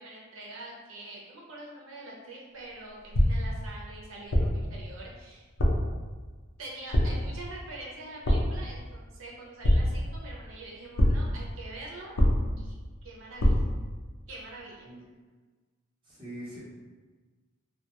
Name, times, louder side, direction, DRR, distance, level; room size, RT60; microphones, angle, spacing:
voice 1, 0.0-5.4 6.6-12.2 12.6-12.8 13.0-13.5 14.3-14.9, right 2 dB, 80° right, -3 dB, 0.7 m, -44 dB
sound 1, 3.1-3.6 4.3-4.7 5.6-6.0 6.9-7.4 8.2-8.7 9.6-10.2 11.0-11.4 12.2-12.7 13.4-13.8, equal, 75° left, 0.5 m, -24 dB
voice 2, 16.0-16.6, right 1 dB, 25° right, -10 dB, 1.0 m, -42 dB
2.4 x 2.3 x 2.9 m, 1.4 s
head